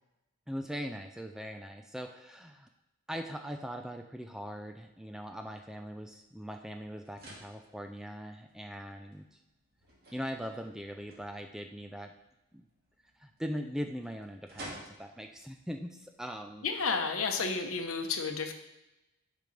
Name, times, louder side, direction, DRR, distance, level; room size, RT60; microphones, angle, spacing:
voice 1, 0.5-2.7 3.1-9.4 10.1-12.1 12.5-12.6 13.2-16.7, equal, ahead, 5 dB, 0.3 m, -40 dB
sound 1, 4.4-17.3, right 1 dB, 45° right, 2.0 m, -55 dB
voice 2, 16.6-18.5, left 4 dB, 65° left, 5 dB, 0.8 m, -31 dB
10.5 x 5.1 x 3.3 m, 0.96 s
head